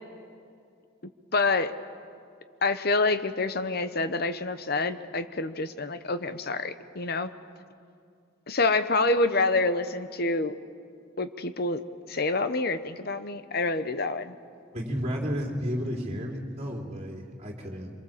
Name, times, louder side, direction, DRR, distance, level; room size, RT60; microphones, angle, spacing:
voice 1, 1.3-1.7 2.6-7.3 8.5-10.5 11.2-11.8 12.1-14.3, left 3 dB, 50° left, 11 dB, 0.9 m, -27 dB
voice 2, 14.7-17.9, equal, 35° right, 0 dB, 3.2 m, -32 dB
25.5 x 23.0 x 7.4 m, 2.4 s
head